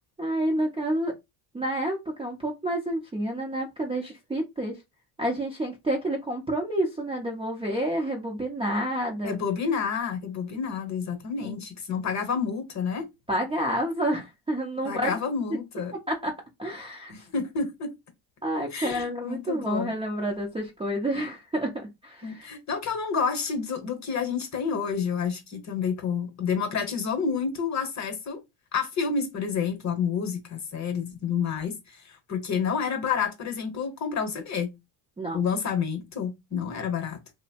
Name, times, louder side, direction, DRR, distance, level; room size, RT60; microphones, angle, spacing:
voice 1, 0.2-1.1 1.5-4.8 5.2-9.4 11.4-11.6 13.3-15.1 16.1-17.3 18.4-22.5 35.2-35.4, right 1 dB, 10° right, 0.5 m, -29 dB
voice 2, 9.2-13.0 14.8-15.9 17.1-17.9 18.7-19.9 22.2-28.4 28.7-34.7 35.3-37.2, left 6 dB, 35° left, 0.9 m, -29 dB
2.8 x 2.1 x 2.8 m
cardioid pair, 120°, 50 cm